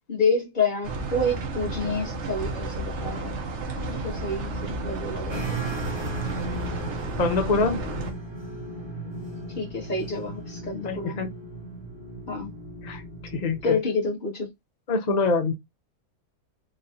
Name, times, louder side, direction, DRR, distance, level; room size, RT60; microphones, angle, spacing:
voice 1, 0.1-3.4 3.8-5.6 9.6-11.3 12.3-12.5 13.6-14.5, left 3 dB, 30° left, 1.6 m, -28 dB
sound 1, 0.8-8.1, right 2 dB, 55° right, 0.9 m, -32 dB
sound 2, 5.3-13.7, right 2 dB, 25° right, 0.6 m, -36 dB
voice 2, 7.2-7.8 10.8-11.3 12.8-13.0 13.3-13.8 14.9-15.5, left 3 dB, 85° left, 0.3 m, -24 dB
3.9 x 2.5 x 2.6 m
omnidirectional pair, 1.7 m